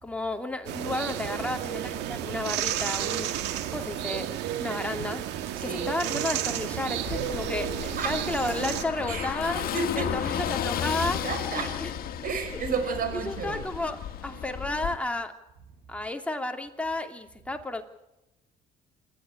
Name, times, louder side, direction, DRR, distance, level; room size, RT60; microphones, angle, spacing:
voice 1, 0.0-3.3 3.7-4.3 4.6-5.3 5.6-9.6 10.0-11.2 11.5-11.9 13.2-15.3 15.9-17.8, left 2 dB, 5° left, 4 dB, 2.9 m, -32 dB
sound 1, 0.7-8.8, right 11 dB, 90° right, 2.0 m, -32 dB
voice 2, 5.6-6.0 8.0-8.2 9.1-9.3 9.6-10.4 11.2-11.8 12.2-13.6, right 4 dB, 55° right, 7 dB, 5.2 m, -32 dB
Car passing by / Engine, 7.1-15.0, left 9 dB, 60° left, 2.1 m, -33 dB
27.5 x 13.0 x 10.0 m, 0.92 s
cardioid pair, 110°, 17 cm